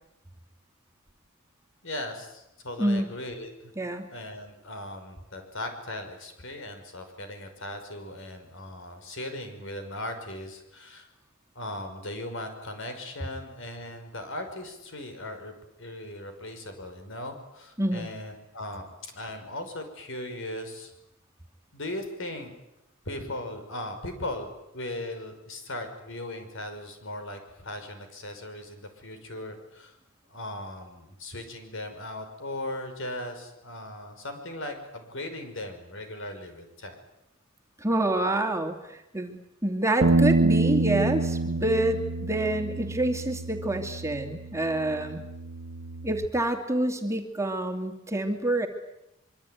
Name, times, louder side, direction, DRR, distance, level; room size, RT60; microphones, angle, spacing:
voice 1, 1.8-3.7 4.1-11.1 11.6-15.5 15.8-20.9 21.7-22.5 23.1-30.0 30.3-37.0, left 1 dB, 65° left, 6 dB, 5.7 m, -38 dB
voice 2, 3.8-4.1 17.8-18.1 37.8-45.2 46.0-48.7, right 1 dB, 15° right, 4 dB, 2.4 m, -27 dB
Bass guitar, 40.0-46.3, right 3 dB, 80° right, 1.2 m, -27 dB
24.5 x 24.5 x 9.3 m, 0.88 s
head